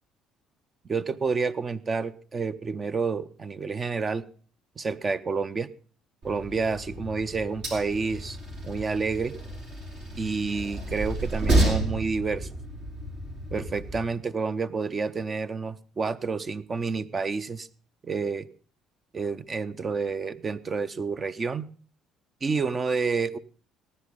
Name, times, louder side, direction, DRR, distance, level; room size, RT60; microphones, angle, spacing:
voice 1, 0.9-4.2 4.8-5.7 6.2-8.4 8.6-9.3 10.1-12.5 13.5-17.7 18.0-18.5 19.1-21.7 22.4-23.4, right 4 dB, 35° right, 14 dB, 0.7 m, -29 dB
Train, 6.2-14.0, right 1 dB, 65° right, 5.6 m, -30 dB
16.0 x 9.9 x 5.3 m, 0.42 s
figure-of-eight pair, 50°, 0 cm